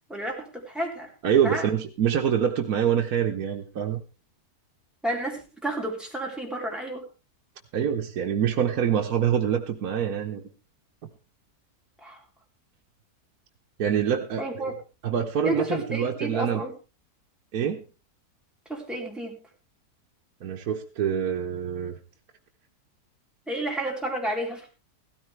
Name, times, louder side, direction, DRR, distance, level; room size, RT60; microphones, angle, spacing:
voice 1, 0.1-1.1 1.4-1.7 5.0-7.0 12.0-12.2 14.4-14.7 15.4-16.7 18.7-19.4 23.5-24.7, right 1 dB, ahead, -1 dB, 3.5 m, -31 dB
voice 2, 1.2-4.0 7.7-10.4 13.8-14.7 15.0-16.6 17.5-17.8 20.4-22.0, right 8 dB, 70° right, 2 dB, 1.5 m, -25 dB
16.0 x 14.0 x 3.3 m, 0.31 s
omnidirectional pair, 1.6 m